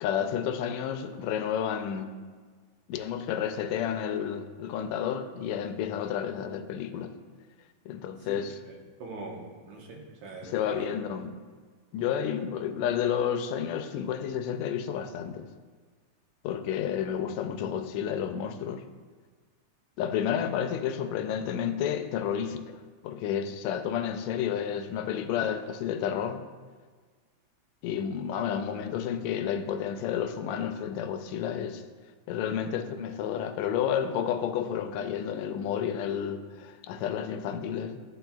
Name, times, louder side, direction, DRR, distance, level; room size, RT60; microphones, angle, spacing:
voice 1, 0.0-2.2 2.9-7.1 7.9-8.6 10.4-11.3 11.9-15.5 16.4-18.9 20.0-26.4 27.8-31.8 32.3-38.0, left 8 dB, 80° left, 9 dB, 1.7 m, -31 dB
voice 2, 9.0-10.9, right 3 dB, 75° right, -1 dB, 2.4 m, -42 dB
12.5 x 4.3 x 2.3 m, 1.5 s
omnidirectional pair, 3.3 m